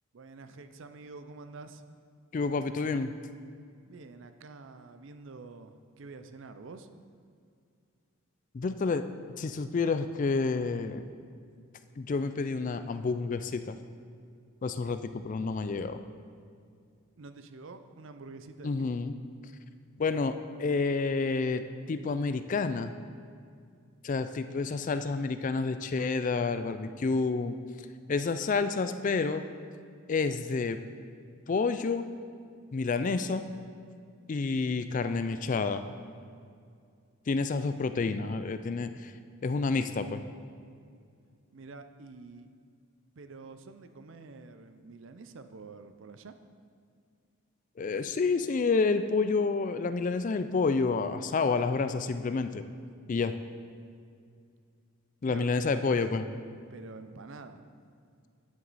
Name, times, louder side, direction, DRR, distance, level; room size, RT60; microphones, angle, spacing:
voice 1, 0.1-1.8 3.9-6.9 14.8-14.9 17.2-18.9 41.5-42.5 43.2-46.3 55.2-55.8 56.7-57.6, right 3 dB, 65° right, 9 dB, 0.5 m, -47 dB
voice 2, 2.3-3.1 8.5-9.1 9.4-11.1 12.0-13.8 14.6-16.0 18.6-19.1 20.0-21.6 21.9-22.9 24.0-27.6 28.1-29.4 30.1-30.8 31.5-32.1 32.7-33.4 34.3-35.9 37.3-39.1 39.4-40.2 47.8-52.6 53.1-53.3 55.2-56.2, left 4 dB, 40° left, 10 dB, 0.3 m, -29 dB
9.7 x 7.6 x 4.1 m, 2.3 s
head